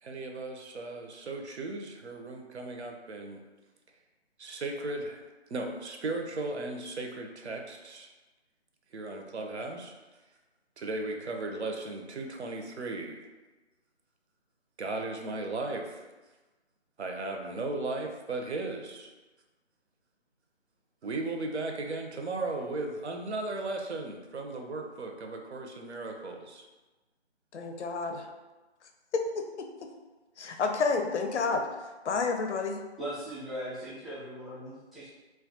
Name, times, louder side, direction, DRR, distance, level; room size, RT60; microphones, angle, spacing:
voice 1, 0.0-3.4 4.4-5.2 5.5-8.1 8.9-10.0 10.8-13.3 14.8-16.0 17.0-19.1 21.0-26.7, right 2 dB, 75° right, 3 dB, 0.5 m, -36 dB
voice 2, 27.5-28.3 29.1-29.9 30.4-31.7 32.0-32.8, left 4 dB, 85° left, 5 dB, 0.5 m, -30 dB
voice 3, 33.0-35.1, equal, ahead, -11 dB, 0.4 m, -39 dB
2.2 x 2.1 x 2.7 m, 1.2 s
figure-of-eight pair, 175°, 34 cm